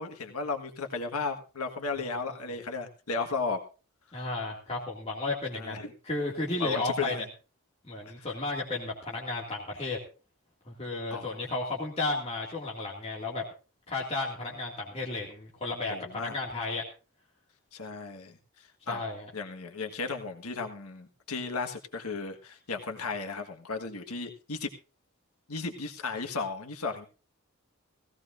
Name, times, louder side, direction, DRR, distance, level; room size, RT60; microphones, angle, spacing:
voice 1, 0.0-3.6 5.5-5.9 6.6-7.3 11.1-11.3 15.9-16.3 17.7-19.0 19.3-24.7 25.5-27.1, left 4 dB, 90° left, 4 dB, 1.5 m, -35 dB
voice 2, 4.1-5.8 6.0-7.1 7.8-10.0 10.7-13.4 13.9-16.8 18.9-19.3, left 2 dB, 25° left, -3 dB, 2.2 m, -33 dB
17.5 x 16.5 x 2.6 m, 0.34 s
head